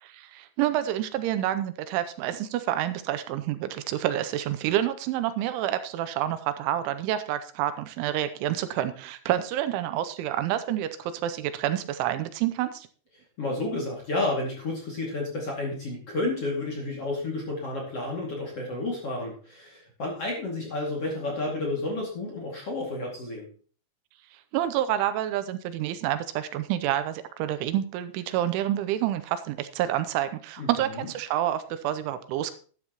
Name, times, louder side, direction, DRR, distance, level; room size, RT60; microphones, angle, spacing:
voice 1, 0.0-12.9 24.5-32.5, right 12 dB, 85° right, 11 dB, 3.0 m, -28 dB
voice 2, 13.4-23.5 30.6-31.1, left 2 dB, 40° left, -2 dB, 2.3 m, -31 dB
12.0 x 11.5 x 3.0 m, 0.41 s
omnidirectional pair, 5.7 m